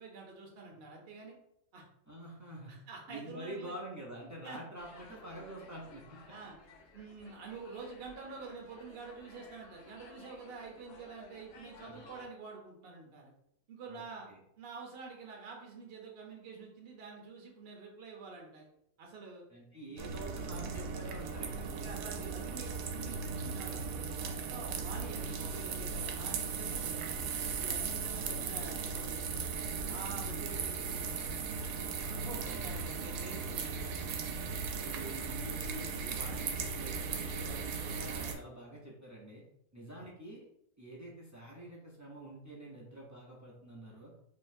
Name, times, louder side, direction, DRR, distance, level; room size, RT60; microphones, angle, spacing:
voice 1, 0.0-1.3 1.7-1.8 2.7-3.7 4.4-4.6 6.3-6.5 6.9-13.3 13.7-14.3 14.6-18.7 19.0-19.4 19.9-20.0 21.8-22.7 23.0-27.1 27.5-29.6 29.8-31.6 32.0-34.2 39.9-40.0, right 4 dB, 50° right, 0 dB, 0.9 m, -48 dB
voice 2, 2.1-2.7 3.1-6.2 11.8-12.1 13.9-14.0 14.3-14.4 19.5-21.7 28.3-28.5 32.3-32.8 34.7-39.4 39.7-40.5 40.8-44.1, right 1 dB, 20° right, -4 dB, 0.5 m, -47 dB
sound 1, 4.8-12.3, left 3 dB, 70° left, 1.1 m, -56 dB
sound 2, 20.0-38.3, right 5 dB, 85° right, 1.0 m, -37 dB
3.9 x 3.0 x 2.6 m, 0.76 s
omnidirectional pair, 1.4 m